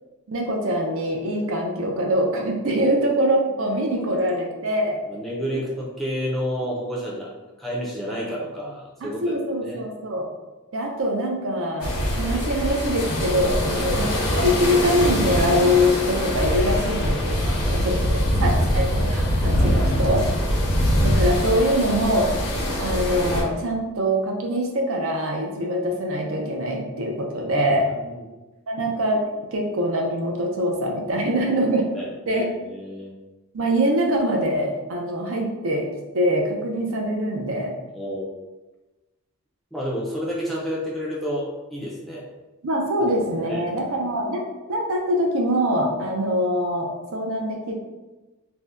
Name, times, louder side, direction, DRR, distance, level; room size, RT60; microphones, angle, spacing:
voice 1, 0.3-5.0 9.0-10.3 10.7-17.4 17.7-20.2 21.0-22.3 22.8-27.9 28.7-29.2 29.5-31.8 32.3-32.4 33.5-35.9 36.1-37.7 42.6-47.7, equal, 60° right, 0 dB, 0.5 m, -23 dB
voice 2, 5.0-7.3 7.6-9.4 9.6-9.9 13.8-13.9 17.1-18.0 19.5-20.2 27.3-28.3 31.6-33.1 37.9-38.3 39.7-42.2 43.5-43.6, equal, ahead, -5 dB, 0.5 m, -31 dB
sound 1, 11.8-23.4, equal, 70° left, 0.7 m, -23 dB
2.6 x 2.1 x 3.4 m, 1.1 s
head